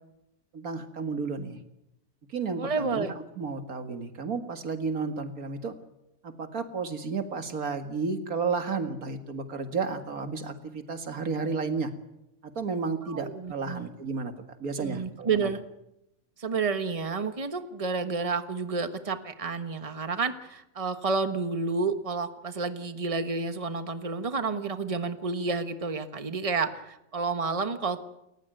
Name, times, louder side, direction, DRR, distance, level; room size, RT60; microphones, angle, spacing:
voice 1, 0.5-1.6 2.3-3.1 3.4-5.7 6.2-11.9 12.6-14.3 14.6-15.5, right 4 dB, 90° right, 8 dB, 2.4 m, -32 dB
voice 2, 2.6-3.1 13.1-13.9 14.8-15.6 16.4-28.0, right 4 dB, 25° right, 9 dB, 1.4 m, -30 dB
29.5 x 15.0 x 9.1 m, 0.87 s
omnidirectional pair, 1.5 m